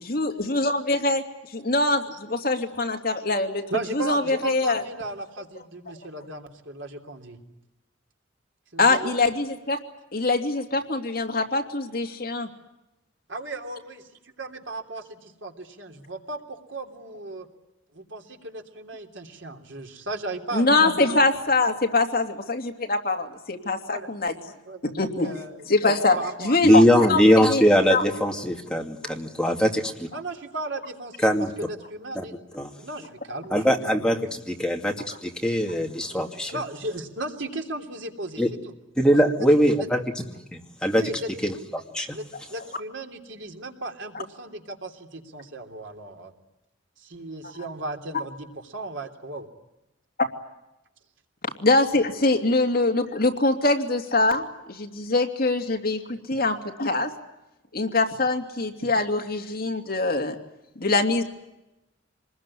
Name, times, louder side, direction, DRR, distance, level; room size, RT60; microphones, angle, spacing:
voice 1, 0.1-1.2 1.5-3.6 3.9-4.8 5.9-6.0 8.8-9.8 10.1-12.5 20.5-24.3 24.9-25.3 25.7-27.6 27.9-28.0 51.4-57.1 57.7-60.4 60.8-61.2, left 2 dB, 50° left, 3 dB, 2.7 m, -23 dB
voice 2, 3.7-7.4 8.7-9.1 13.3-17.5 17.9-20.6 23.8-24.1 24.6-25.7 26.1-26.8 30.1-31.3 31.6-32.3 32.8-33.6 33.8-34.4 36.3-38.7 39.3-39.5 39.8-39.9 40.9-41.3 42.1-42.2 42.5-46.3 47.0-49.5, right 2 dB, 70° right, 4 dB, 3.2 m, -36 dB
voice 3, 26.6-30.1 31.2-31.5 32.1-32.2 32.5-32.7 33.5-34.2 34.5-34.9 35.2-36.5 38.4-38.5 39.0-40.2 40.5-41.0 41.4-42.1, equal, 5° left, 2 dB, 2.5 m, -21 dB
26.5 x 21.0 x 9.9 m, 0.95 s
head